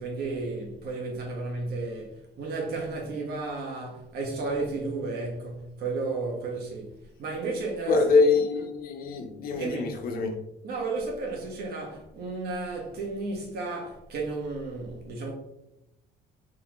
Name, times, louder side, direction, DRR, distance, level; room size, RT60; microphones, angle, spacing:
voice 1, 0.0-6.9 7.2-8.0 9.5-9.9 10.6-15.3, right 3 dB, 70° right, 1.4 m, -33 dB
voice 2, 7.9-10.4, left 4 dB, 60° left, 0.8 m, -24 dB
3.8 x 3.2 x 3.0 m
cardioid pair, 110°, 17 cm